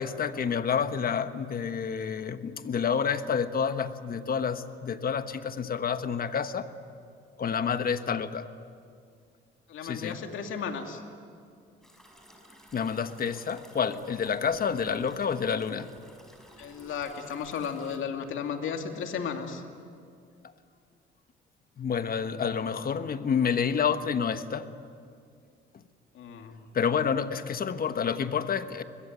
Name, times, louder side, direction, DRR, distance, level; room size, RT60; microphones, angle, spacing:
voice 1, 0.0-6.7 7.4-8.5 9.8-10.2 12.7-15.9 21.8-24.7 26.7-28.8, left 6 dB, 50° left, 10 dB, 1.3 m, -29 dB
voice 2, 9.7-11.0 16.6-19.6 26.1-26.5 27.3-27.4, left 6 dB, 80° left, 4 dB, 2.7 m, -34 dB
sound 1, 11.8-18.0, equal, ahead, 5.1 m, -54 dB
22.5 x 21.5 x 9.5 m, 2.3 s
cardioid pair, 90°, 20 cm